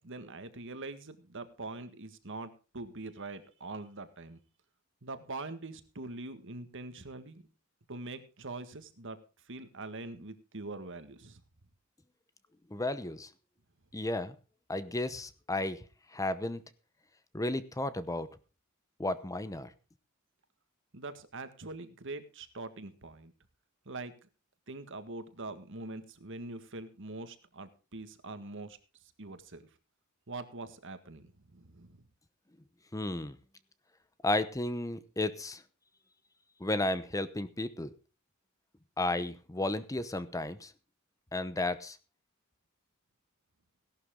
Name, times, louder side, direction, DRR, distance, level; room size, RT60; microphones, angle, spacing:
voice 1, 0.0-4.4 5.0-7.5 7.9-9.2 9.5-11.4 20.9-23.3 23.9-24.1 24.7-28.8 29.2-29.7 30.3-32.1, right 2 dB, 60° right, 10 dB, 1.7 m, -43 dB
voice 2, 12.7-13.3 13.9-14.3 14.7-15.8 16.1-16.6 17.3-18.3 19.0-19.7 32.9-33.4 34.2-35.6 36.6-37.9 39.0-40.7 41.3-42.0, left 2 dB, 15° left, 14 dB, 0.8 m, -33 dB
17.0 x 12.0 x 3.8 m, 0.32 s
head